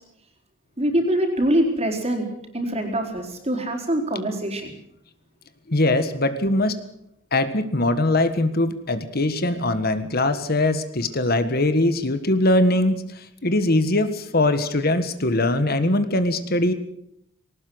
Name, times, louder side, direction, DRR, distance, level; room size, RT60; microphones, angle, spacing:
voice 1, 0.8-2.3 2.5-4.7, right 1 dB, 30° right, 3 dB, 4.4 m, -24 dB
voice 2, 5.7-6.8 7.3-16.7, left 1 dB, 50° left, 11 dB, 1.5 m, -21 dB
20.0 x 19.0 x 8.0 m, 0.76 s
head